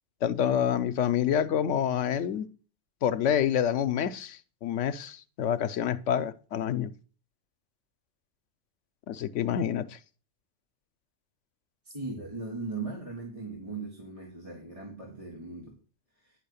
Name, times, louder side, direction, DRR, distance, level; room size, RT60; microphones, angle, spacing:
voice 1, 0.2-2.5 3.0-6.9 9.1-10.0, left 9 dB, 85° left, 1.0 m, -27 dB
voice 2, 11.8-15.8 16.2-16.3, right 3 dB, 30° right, 1.8 m, -38 dB
9.9 x 5.6 x 6.8 m
omnidirectional pair, 1.2 m